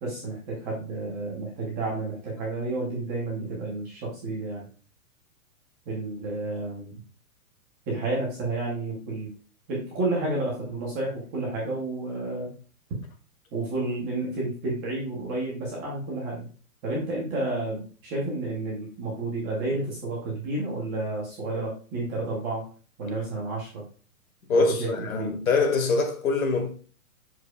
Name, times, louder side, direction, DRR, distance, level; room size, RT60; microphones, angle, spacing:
voice 1, 0.0-4.6 5.9-7.0 7.9-9.3 9.7-12.5 13.5-16.5 16.8-22.7 23.0-23.8 24.5-25.3, right 2 dB, 10° right, 0.7 m, -31 dB
voice 2, 24.5-26.7, left 3 dB, 65° left, 1.8 m, -24 dB
7.4 x 6.4 x 2.3 m
hypercardioid pair, 170°, 44 cm